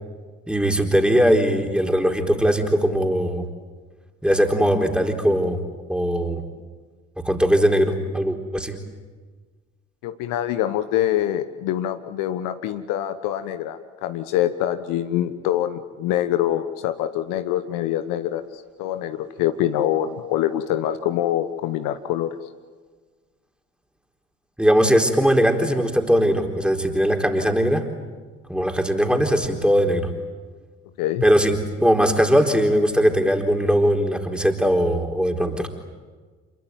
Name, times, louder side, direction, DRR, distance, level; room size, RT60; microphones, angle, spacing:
voice 1, 0.5-3.5 4.2-5.6 5.9-6.4 7.2-8.8 24.6-27.9 28.5-30.1 31.2-35.7, equal, 5° right, 3 dB, 4.1 m, -20 dB
voice 2, 10.0-22.4 31.0-31.2, left 12 dB, 60° left, 10 dB, 1.2 m, -25 dB
27.5 x 22.0 x 9.3 m, 1.4 s
figure-of-eight pair, 50°, 37 cm